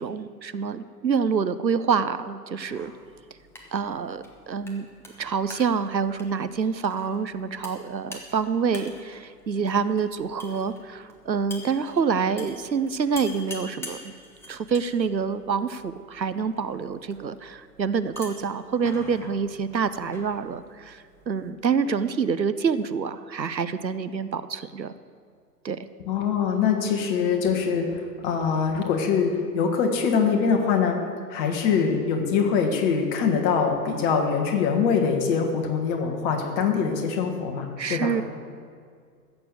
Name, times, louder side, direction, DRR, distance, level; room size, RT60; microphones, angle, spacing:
voice 1, 0.0-2.9 3.7-4.8 5.2-14.1 14.5-24.9 25.6-25.8 37.8-38.2, right 6 dB, 90° right, 13 dB, 0.8 m, -27 dB
sound 1, 2.6-21.5, left 2 dB, 5° left, 1.1 m, -46 dB
voice 2, 26.0-31.0 31.3-38.1, left 6 dB, 30° left, 3 dB, 1.6 m, -23 dB
15.0 x 6.8 x 8.1 m, 2.2 s
figure-of-eight pair, 115°, 50 cm